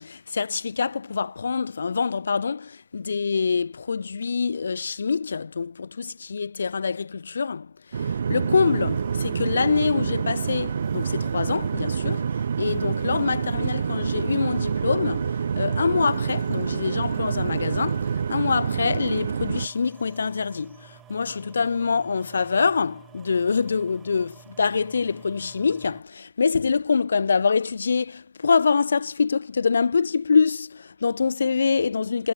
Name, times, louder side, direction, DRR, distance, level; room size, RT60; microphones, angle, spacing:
voice 1, 0.0-12.3 12.6-32.3, left 5 dB, 75° left, 0.6 m, -25 dB
sound 1, 7.9-19.7, right 6 dB, 70° right, 0.4 m, -27 dB
sound 2, 8.5-26.0, right 11 dB, 30° right, 2.1 m, -51 dB
figure-of-eight pair, 90°, 0 cm